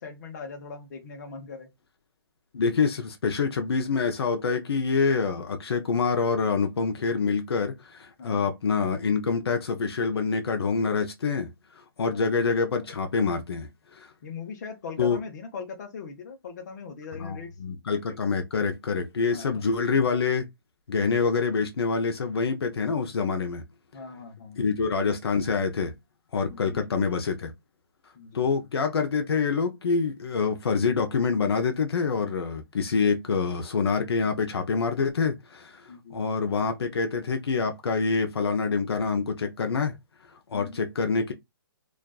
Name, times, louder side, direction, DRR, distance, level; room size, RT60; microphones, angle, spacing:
voice 1, 0.0-1.7 8.2-8.5 12.0-12.3 14.2-17.5 19.3-19.7 23.9-24.6 26.5-26.9 28.1-28.7 35.9-36.2 40.5-40.8, left 5 dB, 45° left, 0.7 m, -40 dB
voice 2, 2.5-11.5 12.0-14.1 15.0-15.2 17.2-20.5 20.9-23.6 24.6-25.9 26.3-27.5 28.3-35.8 36.1-39.9 40.5-41.3, left 5 dB, 85° left, 0.5 m, -26 dB
2.5 x 2.3 x 2.2 m
hypercardioid pair, 160°, 13 cm